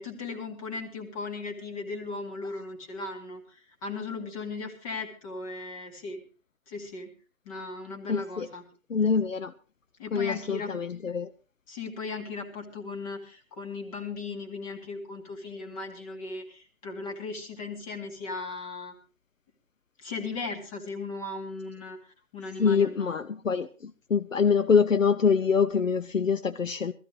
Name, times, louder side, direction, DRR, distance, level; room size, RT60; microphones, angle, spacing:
voice 1, 0.0-6.2 6.7-7.1 7.5-8.6 10.0-10.7 11.7-18.9 20.0-22.0 22.3-23.2, left 3 dB, 25° left, 4 dB, 2.3 m, -37 dB
voice 2, 8.1-8.5 8.9-9.5 10.1-11.3 22.6-26.9, left 6 dB, 70° left, 11 dB, 0.8 m, -25 dB
19.0 x 14.5 x 3.3 m, 0.35 s
figure-of-eight pair, 135°, 41 cm